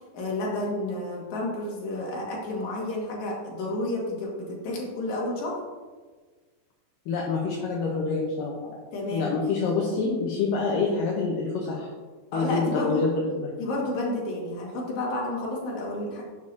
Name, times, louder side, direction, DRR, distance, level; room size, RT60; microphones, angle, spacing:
voice 1, 0.1-5.6 8.9-9.4 12.3-13.0 13.6-16.2, left 1 dB, 55° left, -3 dB, 2.9 m, -31 dB
voice 2, 7.1-8.8 9.1-11.9 12.3-13.6, left 4 dB, 70° left, -2 dB, 2.4 m, -27 dB
11.5 x 7.1 x 2.8 m, 1.4 s
omnidirectional pair, 4.5 m